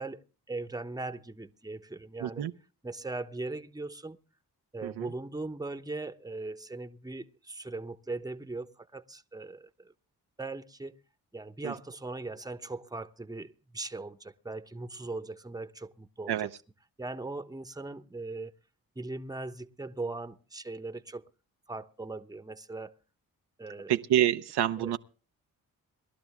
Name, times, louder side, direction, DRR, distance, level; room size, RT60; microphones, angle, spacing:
voice 1, 0.0-2.4 2.8-4.2 4.7-9.9 10.4-11.0 11.3-16.5 17.0-18.5 19.0-21.2 21.7-22.9 23.6-24.0 24.8-25.0, right 3 dB, 10° right, 1.0 m, -39 dB
voice 2, 2.2-2.5 4.8-5.1 11.6-11.7 16.3-16.5 23.9-25.0, right 11 dB, 70° right, 0.7 m, -27 dB
20.0 x 12.0 x 3.6 m
supercardioid pair, 40°, 41 cm